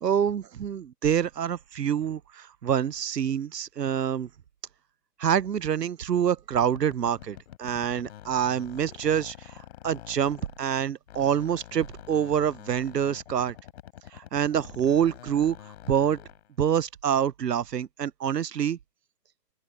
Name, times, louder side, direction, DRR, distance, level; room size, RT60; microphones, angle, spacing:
voice 1, 0.0-4.3 5.2-13.5 14.1-15.6 15.9-16.2 16.6-18.8, right 9 dB, 75° right, 0.8 m, -26 dB
sound 1, 6.6-10.8 11.1-16.5, left 12 dB, 40° left, 3.8 m, -46 dB
open air
figure-of-eight pair, 135°, 49 cm